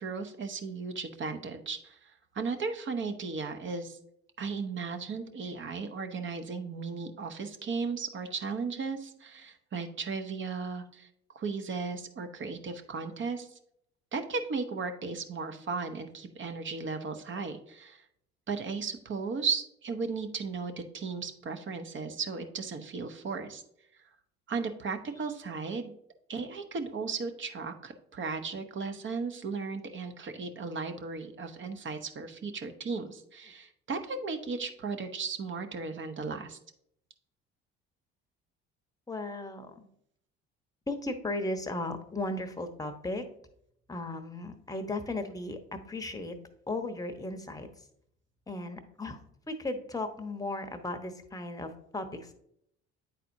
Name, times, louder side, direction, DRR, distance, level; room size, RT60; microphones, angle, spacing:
voice 1, 0.0-4.0 4.4-11.1 11.3-13.5 14.1-18.0 18.5-23.6 24.5-25.9 26.3-36.6, right 4 dB, 40° right, 7 dB, 0.9 m, -36 dB
voice 2, 39.1-39.9 40.9-43.2 43.9-46.4 46.7-47.9 48.5-49.2 49.5-52.3, left 2 dB, 10° left, 7 dB, 0.9 m, -36 dB
9.2 x 4.2 x 2.6 m, 0.72 s
hypercardioid pair, 65°, 31 cm